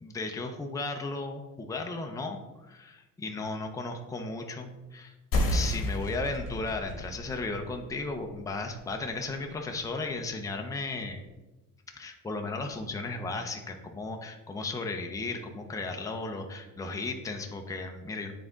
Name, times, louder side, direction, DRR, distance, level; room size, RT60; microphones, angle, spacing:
voice 1, 0.0-5.1 5.5-11.2 11.9-18.3, left 3 dB, 10° left, 3 dB, 0.6 m, -35 dB
sound 1, 5.3-10.4, left 1 dB, 45° left, 1.4 m, -33 dB
8.5 x 3.6 x 3.9 m, 1.1 s
cardioid pair, 125°, 32 cm